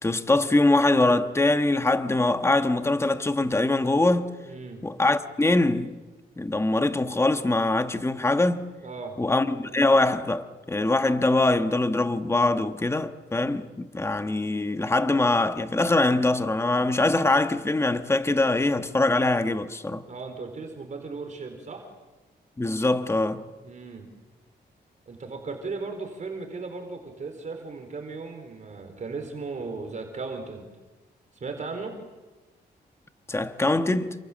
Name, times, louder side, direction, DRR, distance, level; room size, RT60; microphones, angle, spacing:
voice 1, 0.0-4.3 4.8-6.0 6.4-8.6 9.2-20.0 22.6-23.4 33.3-34.1, left 2 dB, 15° left, 1.3 m, -23 dB
voice 2, 4.5-4.8 8.8-9.2 20.1-21.9 23.6-24.1 25.1-30.7 31.3-32.0, right 4 dB, 45° right, 4.3 m, -36 dB
29.0 x 27.0 x 7.4 m
cardioid pair, 115°, 18 cm